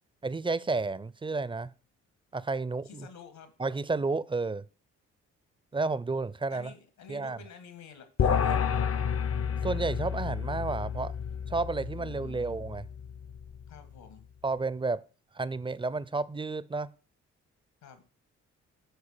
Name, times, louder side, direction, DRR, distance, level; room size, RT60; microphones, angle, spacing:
voice 1, 0.2-1.7 2.3-3.1 3.6-4.6 5.7-6.7 7.1-7.4 9.6-11.1 11.5-12.8 14.4-15.0 15.3-16.9, right 3 dB, 15° right, 0.5 m, -31 dB
voice 2, 2.8-3.5 6.5-8.9 11.9-12.5 13.7-14.3 17.8-18.0, left 7 dB, 75° left, 1.9 m, -50 dB
sound 1, 8.2-13.7, left 7 dB, 40° left, 0.6 m, -30 dB
9.0 x 4.8 x 6.8 m
hypercardioid pair, 45°, 37 cm